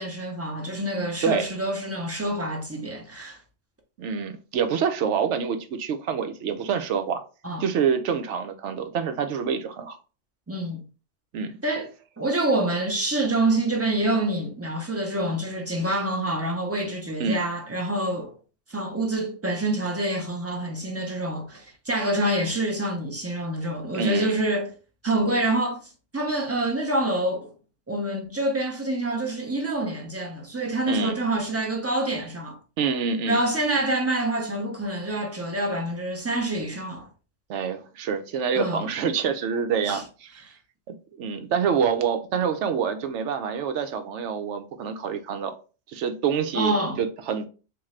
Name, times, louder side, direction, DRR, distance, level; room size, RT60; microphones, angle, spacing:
voice 1, 0.0-3.4 7.4-7.6 10.5-10.8 11.6-11.9 12.2-18.4 18.7-24.7 25.0-25.8 26.1-27.5 27.9-32.6 33.3-37.1 38.5-38.8 39.8-40.0 46.5-47.0, right 1 dB, 20° right, 0.4 m, -26 dB
voice 2, 4.0-7.2 7.6-10.0 11.3-11.5 17.2-17.4 23.9-24.4 30.9-31.2 32.8-33.4 37.5-40.4 41.1-45.5 45.9-47.5, right 6 dB, 75° right, 0.9 m, -26 dB
3.7 x 2.6 x 3.2 m
omnidirectional pair, 1.2 m